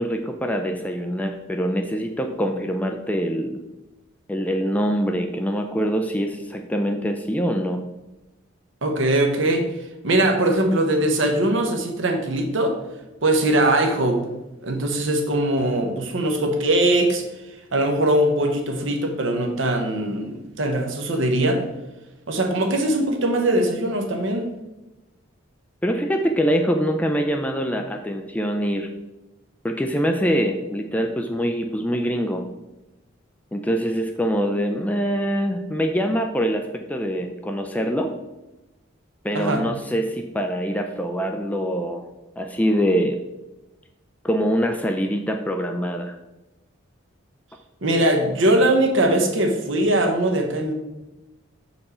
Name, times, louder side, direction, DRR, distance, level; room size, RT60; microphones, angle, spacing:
voice 1, 0.0-3.6 4.3-7.8 25.8-28.9 29.6-32.4 33.5-38.1 39.2-42.0 42.4-43.2 44.2-46.1, equal, 5° left, 4 dB, 0.3 m, -24 dB
voice 2, 8.8-9.7 10.0-12.8 13.2-14.2 14.6-17.2 17.7-21.6 22.3-24.5 39.3-39.6 47.8-50.7, right 1 dB, 65° right, 4 dB, 1.0 m, -21 dB
6.7 x 4.4 x 4.3 m, 1.0 s
head